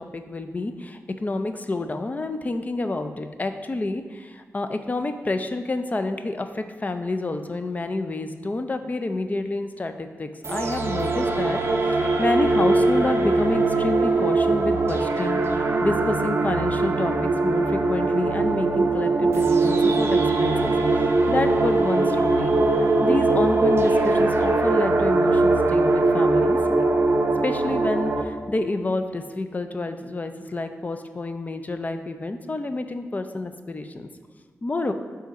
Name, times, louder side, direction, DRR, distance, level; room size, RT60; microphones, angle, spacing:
voice 1, 0.0-11.6 11.9-17.1 17.4-20.8 21.3-26.6 27.4-34.1 34.6-34.9, left 2 dB, 30° left, 8 dB, 0.4 m, -28 dB
sound 1, 10.4-28.2, right 3 dB, 50° right, 0.6 m, -21 dB
5.2 x 3.9 x 5.1 m, 1.5 s
wide cardioid pair, 95°, 5 cm